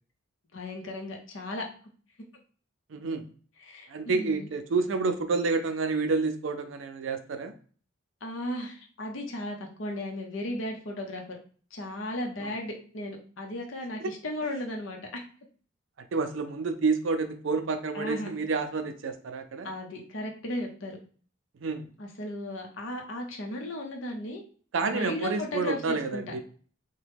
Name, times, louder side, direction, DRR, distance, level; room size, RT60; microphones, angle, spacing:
voice 1, 0.5-1.7 3.6-4.5 8.2-11.2 11.7-15.2 17.9-18.3 19.6-21.0 22.0-24.4 24.9-26.3, left 1 dB, 75° left, 1 dB, 0.7 m, -35 dB
voice 2, 2.9-3.2 3.9-7.5 12.4-12.5 14.0-14.1 16.1-19.7 21.6-21.9 24.7-26.4, right 4 dB, 70° right, 7 dB, 0.5 m, -29 dB
2.9 x 2.1 x 3.4 m, 0.42 s
head